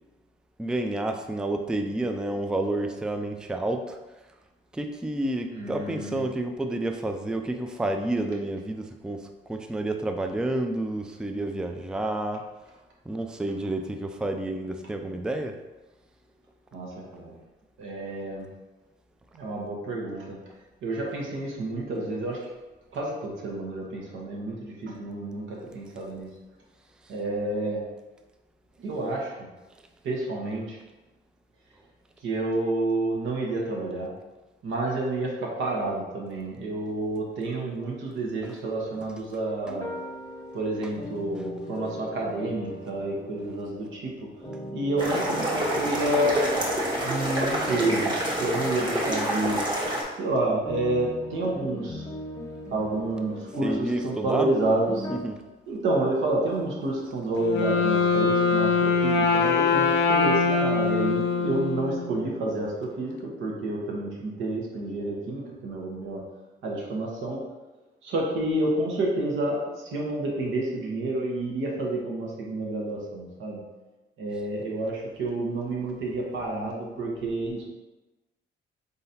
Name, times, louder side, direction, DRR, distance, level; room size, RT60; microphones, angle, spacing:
voice 1, 0.6-4.0 4.7-12.4 13.1-15.6 27.0-27.1 38.4-38.6 39.0-39.1 39.7-39.8 41.4-41.5 53.6-54.5 55.1-55.4, right 1 dB, 5° right, 5 dB, 0.3 m, -30 dB
voice 2, 5.5-6.2 16.7-17.3 17.8-18.4 19.3-20.4 20.8-22.4 22.9-26.3 27.1-27.8 28.8-29.5 30.0-30.8 32.2-34.1 34.6-39.9 40.5-44.3 44.7-46.4 47.0-49.6 50.2-52.1 52.7-55.1 55.7-66.2 66.6-67.4 68.0-73.6 74.2-77.7, right 2 dB, 80° right, -2 dB, 1.1 m, -29 dB
sound 1, 39.7-43.9 44.4-50.0 50.6-55.2, left 1 dB, 15° left, 0.8 m, -39 dB
sound 2, 45.0-50.0, right 1 dB, 25° right, 1.1 m, -27 dB
Wind instrument woodwind instrument, 57.4-62.2, left 5 dB, 75° left, 0.7 m, -23 dB
4.0 x 3.8 x 2.7 m, 1.1 s
cardioid pair, 90°, 20 cm